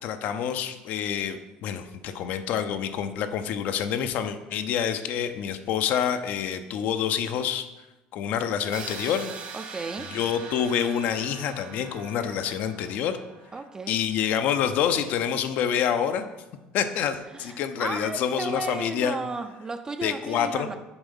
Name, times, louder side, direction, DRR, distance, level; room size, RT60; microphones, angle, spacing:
voice 1, 0.0-7.7 8.1-9.3 10.1-13.2 13.9-16.3 16.7-19.2 20.0-20.7, left 8 dB, 65° left, 0.6 m, -27 dB
sound 1, 8.7-14.5, right 6 dB, 45° right, 1.4 m, -43 dB
voice 2, 9.5-10.2 13.5-14.0 17.3-20.8, right 3 dB, 20° right, 0.5 m, -34 dB
7.1 x 4.4 x 5.4 m
cardioid pair, 115°, 3 cm